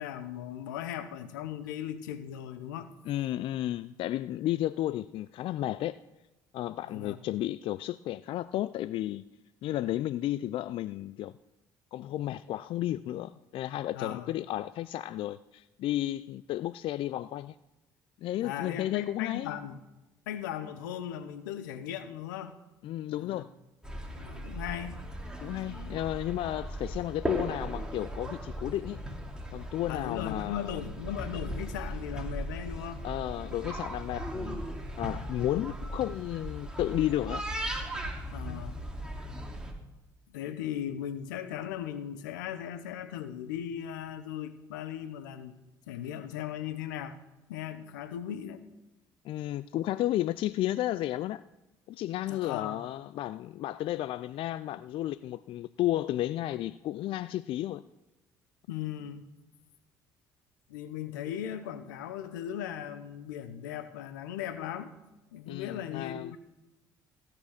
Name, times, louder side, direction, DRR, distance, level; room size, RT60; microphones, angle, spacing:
voice 1, 0.0-2.9 6.9-7.2 13.9-14.3 18.4-19.8 20.3-22.6 23.1-23.5 24.2-25.1 25.5-26.0 29.9-33.1 38.3-38.8 40.3-45.5 45.9-47.2 47.5-48.6 52.3-52.8 58.7-59.3 60.7-64.9 65.3-66.4, left 10 dB, 90° left, 0.8 m, -38 dB
voice 2, 3.1-6.0 6.5-9.3 9.6-11.3 11.9-17.5 18.2-19.5 22.8-23.5 25.4-29.0 29.5-30.8 33.0-34.6 35.0-37.5 38.4-38.6 49.2-51.4 51.9-57.8 65.5-66.3, left 14 dB, 60° left, 0.4 m, -33 dB
sound 1, 23.8-39.7, right 1 dB, 5° right, 2.9 m, -38 dB
15.5 x 5.9 x 6.5 m
hypercardioid pair, 60°, 10 cm